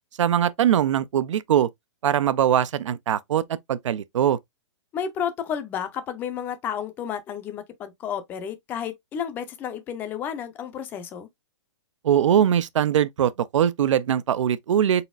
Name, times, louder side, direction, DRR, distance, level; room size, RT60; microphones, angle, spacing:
voice 1, 0.2-1.7 2.0-4.4 12.0-15.1, right 10 dB, 90° right, 0.4 m, -22 dB
voice 2, 4.9-11.3, left 8 dB, 10° left, 0.4 m, -31 dB
4.1 x 3.9 x 2.3 m
hypercardioid pair, 165°, 15 cm